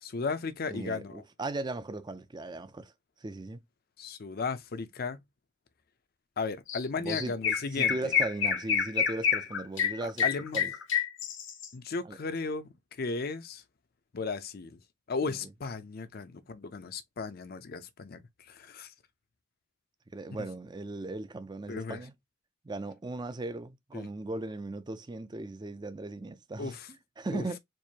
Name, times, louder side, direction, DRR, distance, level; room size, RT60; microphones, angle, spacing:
voice 1, 0.0-1.2 4.0-5.2 6.4-8.1 10.2-10.6 11.7-12.7 13.0-13.6 14.1-14.8 15.1-18.9 21.7-22.0 23.9-24.1 26.6-26.9 27.3-27.4, left 4 dB, 45° left, 0.5 m, -35 dB
voice 2, 0.7-2.9 3.2-3.6 7.0-10.2 10.5-10.7 12.0-12.2 15.3-15.5 20.1-22.1 22.6-27.6, right 2 dB, 20° right, 0.4 m, -38 dB
Chirp tweet, 6.7-6.8 7.1-11.7, left 7 dB, 65° left, 0.8 m, -28 dB
4.5 x 2.5 x 2.7 m
head